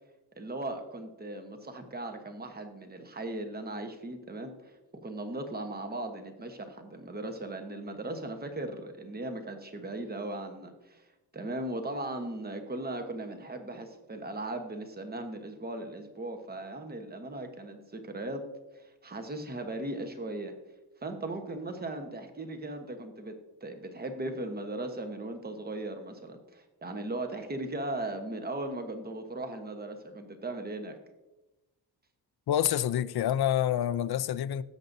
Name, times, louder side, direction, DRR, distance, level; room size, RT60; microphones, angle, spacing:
voice 1, 0.4-4.7 5.0-11.0 11.3-18.5 18.7-20.5 21.0-23.4 23.6-31.0, right 2 dB, 25° right, 1.1 m, -38 dB
voice 2, 32.5-34.6, left 11 dB, 65° left, 0.5 m, -27 dB
17.0 x 7.8 x 2.7 m
wide cardioid pair, 145°, 41 cm